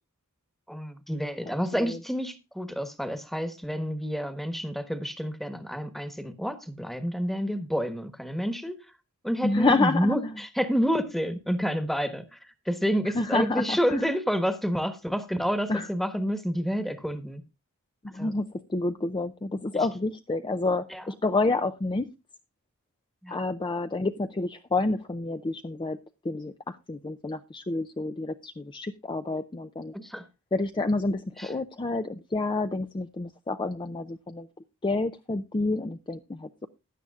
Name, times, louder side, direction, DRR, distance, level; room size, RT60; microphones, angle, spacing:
voice 1, 0.7-8.8 9.2-12.4 12.7-17.4 18.2-18.3 20.9-21.0 23.2-23.4 29.9-30.2 31.4-31.5, equal, ahead, 1.2 m, -29 dB
voice 2, 1.5-2.0 9.4-10.3 13.1-14.0 15.7-15.9 18.0-22.1 23.3-26.0 26.2-29.9 30.5-34.5 34.8-36.7, left 3 dB, 20° left, 0.5 m, -29 dB
16.0 x 10.5 x 2.4 m
head